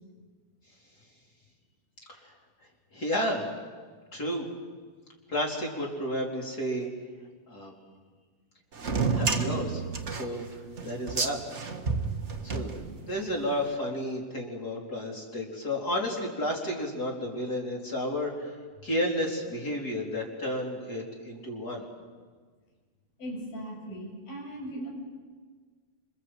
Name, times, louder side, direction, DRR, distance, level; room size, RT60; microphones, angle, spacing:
voice 1, 2.9-3.5 4.1-4.5 5.3-6.9 7.5-7.7 9.1-9.8 10.1-10.5 10.8-11.4 12.4-12.7 13.1-18.5 18.8-21.8, equal, 25° left, 0 dB, 4.2 m, -31 dB
sound 1, 8.8-13.3, right 4 dB, 50° right, 0.8 m, -30 dB
voice 2, 23.2-24.9, right 1 dB, 85° left, 1 dB, 8.9 m, -38 dB
27.5 x 27.0 x 7.9 m, 1.5 s
omnidirectional pair, 4.1 m